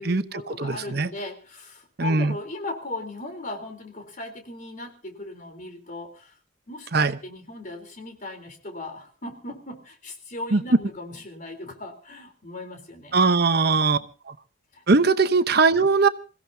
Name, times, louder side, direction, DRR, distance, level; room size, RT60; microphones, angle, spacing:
voice 1, 0.0-6.3 6.7-13.2 14.7-14.8, left 2 dB, 45° left, 4 dB, 3.7 m, -38 dB
voice 2, 0.6-1.1 2.0-2.4 6.9-7.1 10.5-10.6 13.1-14.0 14.3-14.4 14.9-16.1, right 4 dB, 60° right, 11 dB, 0.9 m, -20 dB
27.5 x 16.0 x 2.8 m, 0.36 s
head